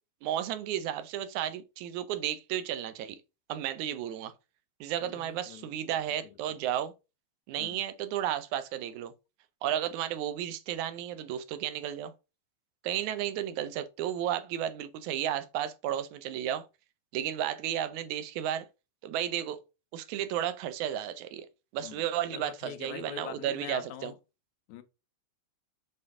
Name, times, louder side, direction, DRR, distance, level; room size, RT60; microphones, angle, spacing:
voice 1, 0.2-3.2 3.5-4.3 4.8-6.9 7.5-9.1 9.6-12.1 12.8-16.7 17.1-18.7 19.0-19.6 19.9-21.5 21.7-24.1, right 11 dB, 90° right, 2.2 m, -33 dB
voice 2, 5.0-5.7 6.2-6.5 7.6-7.8 21.8-22.0 22.3-24.2 24.7-24.8, left 11 dB, 85° left, 2.1 m, -44 dB
6.9 x 4.3 x 3.6 m
omnidirectional pair, 3.3 m